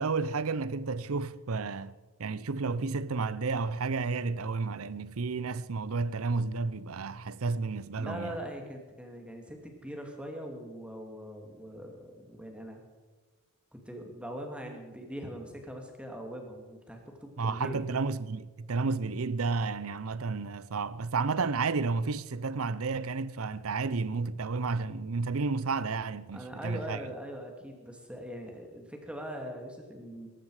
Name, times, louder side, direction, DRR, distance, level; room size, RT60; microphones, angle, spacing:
voice 1, 0.0-8.4 17.4-27.0, right 4 dB, 75° right, 0.7 m, -31 dB
voice 2, 8.0-12.8 13.7-17.8 26.3-30.3, equal, 5° right, 2.5 m, -41 dB
19.0 x 15.0 x 5.0 m
head